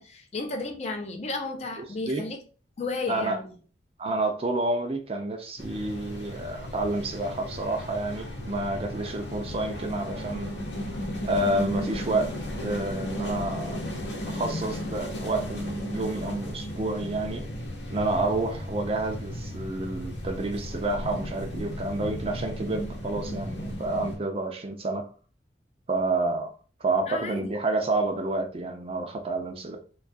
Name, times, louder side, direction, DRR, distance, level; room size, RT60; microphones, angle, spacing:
voice 1, 0.0-2.4 2.8-3.6 27.1-27.5, left 3 dB, 35° left, 0.4 m, -33 dB
voice 2, 4.0-10.5 11.2-12.3 12.6-13.8 14.2-17.5 17.9-25.1 25.9-26.5 26.8-29.8, right 2 dB, 30° right, 0.4 m, -29 dB
sound 1, 5.6-24.2, equal, 75° left, 0.7 m, -35 dB
2.3 x 2.2 x 2.5 m
head